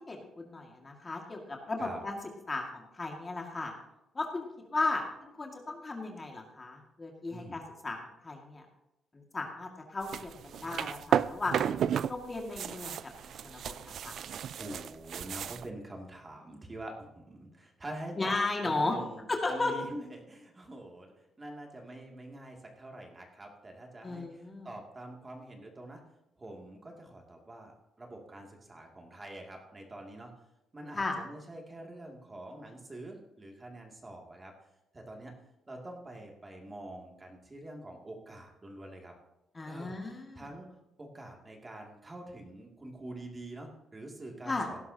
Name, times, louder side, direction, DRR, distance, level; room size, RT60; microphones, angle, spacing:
voice 1, 0.1-2.2 2.5-3.7 4.1-8.7 9.1-11.6 12.1-13.0 13.2-14.1 18.2-18.9 19.3-19.7 24.0-24.7 30.9-31.2 39.5-40.5 44.4-44.7, left 3 dB, 25° left, 1 dB, 2.1 m, -35 dB
voice 2, 7.3-7.6 13.1-13.2 14.3-18.4 18.6-26.0 26.4-30.3 30.7-34.5 34.9-35.3 35.7-39.1 39.7-40.7 41.0-44.8, right 1 dB, 25° right, 0 dB, 2.5 m, -45 dB
sound 1, 10.0-12.1 12.4-15.7, right 9 dB, 65° right, 0.4 m, -33 dB
17.5 x 11.5 x 2.9 m, 0.89 s
cardioid pair, 90°, 0 cm